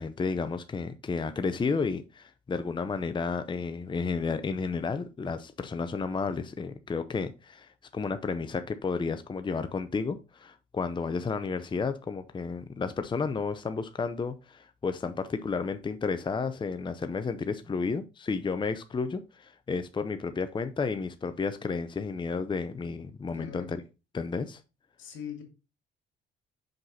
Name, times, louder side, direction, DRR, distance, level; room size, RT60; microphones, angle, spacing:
voice 1, 0.0-23.8 24.1-24.6, left 4 dB, 25° left, 0.6 m, -32 dB
voice 2, 23.3-23.8 25.0-25.4, left 8 dB, 80° left, 2.2 m, -42 dB
5.8 x 5.2 x 4.0 m
cardioid pair, 90°, 20 cm